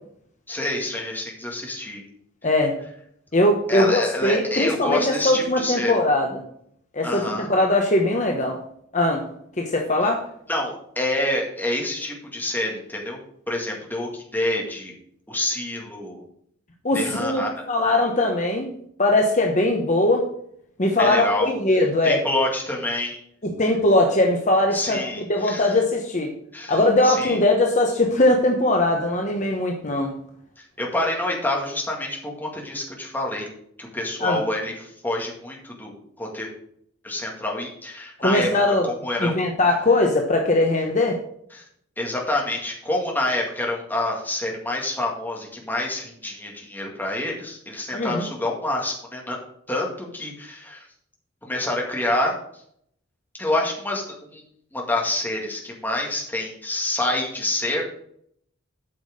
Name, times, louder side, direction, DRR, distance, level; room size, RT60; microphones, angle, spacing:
voice 1, 0.5-2.0 3.7-5.9 7.0-7.5 10.5-13.2 13.5-14.9 15.3-16.2 16.9-17.5 21.0-21.5 22.0-23.2 24.7-25.7 26.5-27.4 30.8-33.5 33.8-36.5 37.0-38.8 39.0-39.3 41.5-41.6 42.0-49.4 49.7-50.9 51.4-52.4 53.4-54.4 54.7-57.8, left 1 dB, 10° left, -1 dB, 2.1 m, -27 dB
voice 2, 2.4-2.7 3.3-6.4 6.9-8.6 8.9-9.3 9.6-10.2 16.8-18.7 19.0-20.3 20.8-22.2 23.4-26.3 26.7-30.1 34.2-34.4 38.2-38.9 39.2-41.2 47.9-48.3, left 2 dB, 35° left, 2 dB, 1.1 m, -20 dB
8.8 x 6.2 x 6.5 m, 0.68 s
head